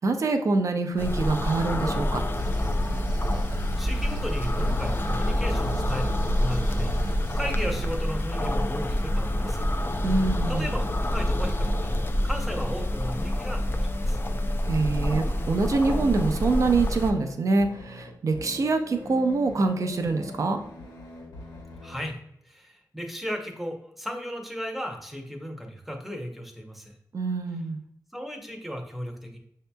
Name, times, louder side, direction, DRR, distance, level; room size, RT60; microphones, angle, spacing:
voice 1, 0.0-2.2 10.0-10.6 14.7-20.6 27.1-27.8, right 3 dB, 50° right, 6 dB, 0.5 m, -25 dB
sound 1, 1.0-17.1, left 1 dB, 30° left, 0.4 m, -27 dB
sound 2, 2.4-7.9, right 2 dB, 75° right, 0.9 m, -34 dB
voice 2, 3.3-9.7 10.5-10.8 11.1-11.9 12.2-14.2 21.8-22.2 22.4-27.0 28.1-29.4, equal, ahead, 2 dB, 0.7 m, -35 dB
sound 3, 10.1-22.1, left 1 dB, 85° left, 1.2 m, -42 dB
6.3 x 2.8 x 2.2 m, 0.73 s
wide cardioid pair, 145°, 7 cm